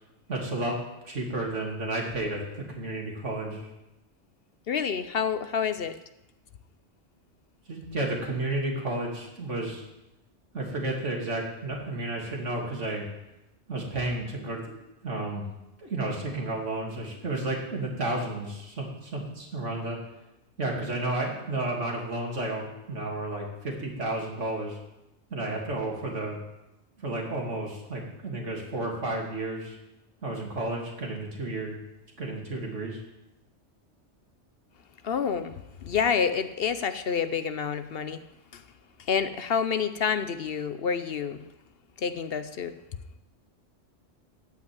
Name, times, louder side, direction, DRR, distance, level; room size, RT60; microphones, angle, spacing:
voice 1, 0.3-0.8 1.0-3.7 7.7-9.8 10.5-13.0 13.7-14.7 15.0-15.5 15.8-20.0 20.6-24.8 25.3-26.4 27.0-29.8 30.2-31.8 32.2-33.0, right 2 dB, 80° right, -1 dB, 2.9 m, -32 dB
voice 2, 4.7-6.0 35.0-38.2 38.5-38.6 39.0-41.4 42.0-42.7, left 6 dB, 60° left, 11 dB, 0.8 m, -28 dB
14.5 x 5.3 x 9.3 m, 0.92 s
omnidirectional pair, 1.2 m